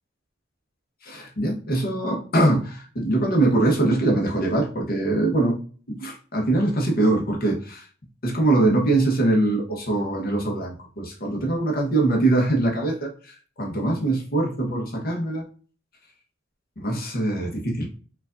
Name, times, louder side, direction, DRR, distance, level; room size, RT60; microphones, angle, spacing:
voice 1, 1.0-5.6 5.9-7.9 8.2-15.4 16.8-17.9, right 2 dB, 50° left, 0 dB, 1.0 m, -23 dB
4.6 x 2.5 x 2.5 m, 0.42 s
head